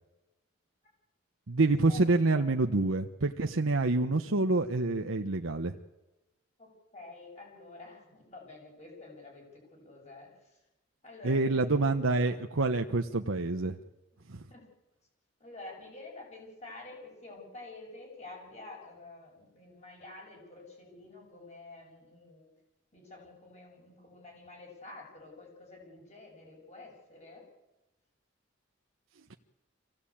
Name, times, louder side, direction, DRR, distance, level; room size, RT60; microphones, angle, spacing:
voice 1, 1.5-5.7 11.2-13.8 14.3-14.4, right 3 dB, 75° right, 5 dB, 1.0 m, -27 dB
voice 2, 6.6-10.6 11.0-12.3 14.5-14.7 15.4-22.5 22.9-27.5, left 2 dB, 30° left, 0 dB, 7.5 m, -49 dB
25.0 x 16.5 x 8.7 m, 1.0 s
head